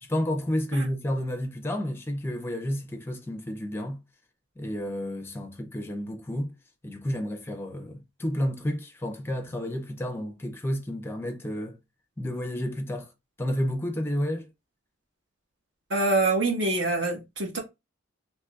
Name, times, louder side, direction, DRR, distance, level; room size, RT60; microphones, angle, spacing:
voice 1, 0.0-4.0 4.6-6.5 6.8-11.8 12.2-13.1 13.4-14.5, equal, 10° left, 0.5 m, -31 dB
voice 2, 15.9-17.6, right 2 dB, 60° right, 1.3 m, -25 dB
3.7 x 3.0 x 2.3 m
head